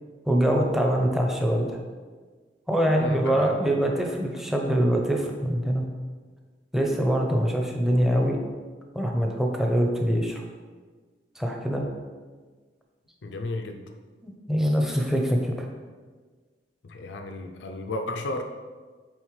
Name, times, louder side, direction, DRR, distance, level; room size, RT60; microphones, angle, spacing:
voice 1, 0.3-1.7 2.7-5.9 6.7-8.4 8.9-10.4 11.4-11.9 14.2-15.7, equal, ahead, 0 dB, 0.7 m, -24 dB
voice 2, 3.0-3.6 13.2-13.8 16.8-18.4, left 2 dB, 80° left, 5 dB, 0.5 m, -33 dB
8.6 x 3.9 x 3.2 m, 1.4 s
head